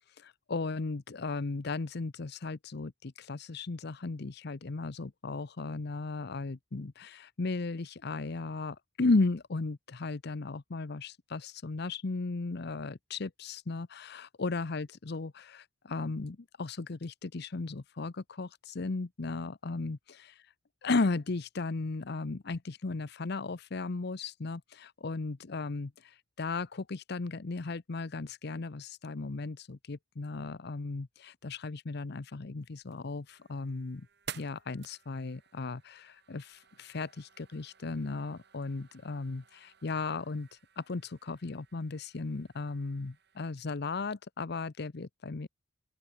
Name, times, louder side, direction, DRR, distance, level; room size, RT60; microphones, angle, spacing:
voice 1, 0.2-20.4 20.8-34.1 34.3-40.5 40.8-45.5, left 3 dB, 60° left, 0.7 m, -35 dB
sound 1, 32.6-43.5, right 7 dB, 60° right, 4.1 m, -53 dB
open air
head